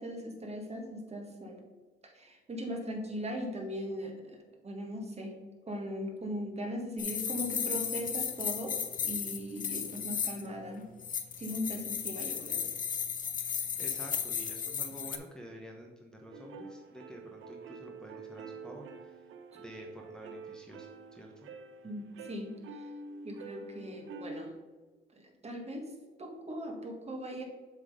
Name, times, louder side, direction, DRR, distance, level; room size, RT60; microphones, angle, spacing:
voice 1, 0.0-1.6 2.0-5.4 5.7-10.9 11.3-12.7 12.9-13.1 21.8-22.9 23.2-24.5 25.1-27.4, equal, 30° right, 2 dB, 1.6 m, -39 dB
sound 1, 7.0-10.5 11.0-15.2, left 7 dB, 45° left, 0.7 m, -35 dB
voice 2, 13.6-19.2 19.5-21.5, equal, 5° left, -1 dB, 0.9 m, -49 dB
sound 2, 16.3-24.5, right 4 dB, 80° right, 0.7 m, -47 dB
7.3 x 3.7 x 4.9 m, 1.4 s
cardioid pair, 90°, 20 cm